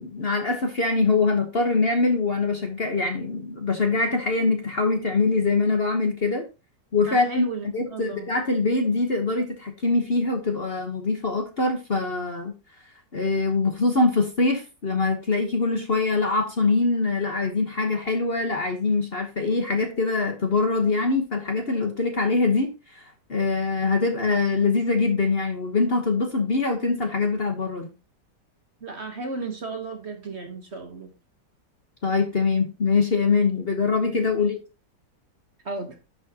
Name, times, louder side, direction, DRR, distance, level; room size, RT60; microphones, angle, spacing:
voice 1, 0.0-6.4 6.9-7.4 7.7-12.5 13.1-23.0 23.3-27.9 32.0-34.6, left 3 dB, 40° left, 4 dB, 1.2 m, -23 dB
voice 2, 7.1-8.3 28.8-31.1 34.4-34.5 35.6-36.0, right 3 dB, 40° right, 4 dB, 1.4 m, -34 dB
10.5 x 6.3 x 2.9 m, 0.30 s
omnidirectional pair, 1.9 m